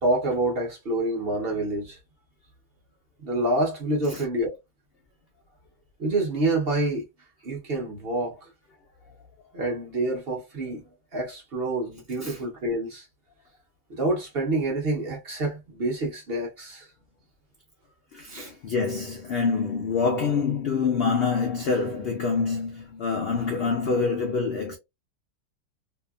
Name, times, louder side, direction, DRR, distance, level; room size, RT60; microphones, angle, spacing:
voice 1, 0.0-2.0 3.2-4.5 6.0-7.0 7.4-8.5 9.5-10.8 11.1-13.1 13.9-16.9 18.3-18.5, right 2 dB, 50° right, 0.9 m, -27 dB
voice 2, 18.1-24.8, left 5 dB, 70° left, 0.6 m, -26 dB
2.8 x 2.4 x 2.2 m
omnidirectional pair, 1.6 m